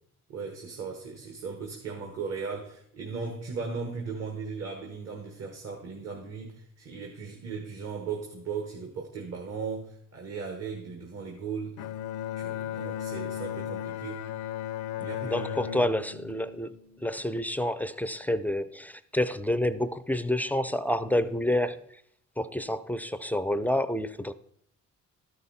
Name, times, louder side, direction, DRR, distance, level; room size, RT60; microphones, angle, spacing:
voice 1, 0.3-11.8 12.3-14.3 15.0-15.9, right 5 dB, 55° right, 1.5 m, -37 dB
Bowed string instrument, 11.8-17.2, left 11 dB, 80° left, 0.5 m, -36 dB
voice 2, 15.2-16.8 17.0-21.9 22.4-24.3, left 1 dB, 5° left, 0.4 m, -28 dB
12.5 x 5.6 x 4.1 m
cardioid pair, 90°, 30 cm